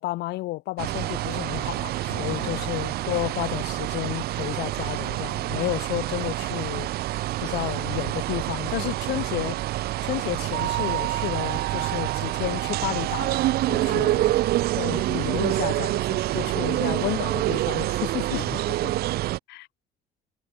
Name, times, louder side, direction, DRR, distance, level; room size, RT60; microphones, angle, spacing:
voice 1, 0.0-6.9 7.4-9.6 10.0-13.4 13.7-14.1 14.7-18.4 19.5-19.7, left 19 dB, 85° left, 1.2 m, -31 dB
sound 1, 0.8-19.4, right 16 dB, 65° right, 0.5 m, -27 dB
voice 2, 2.1-2.8 13.7-14.4 16.3-16.6 18.3-19.2, left 13 dB, 65° left, 4.5 m, -39 dB
cardioid pair, 110°, 17 cm